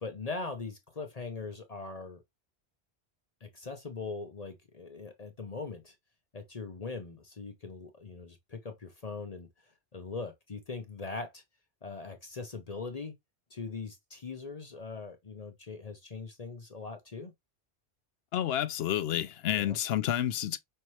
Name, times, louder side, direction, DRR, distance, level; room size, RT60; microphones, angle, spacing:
voice 1, 0.0-2.2 3.4-5.9 6.3-9.5 9.9-11.4 11.8-13.1 13.5-17.3 19.5-19.8, left 4 dB, 40° left, 0.8 m, -41 dB
voice 2, 18.3-20.6, left 11 dB, 75° left, 0.8 m, -30 dB
5.6 x 2.9 x 3.0 m
omnidirectional pair, 1.1 m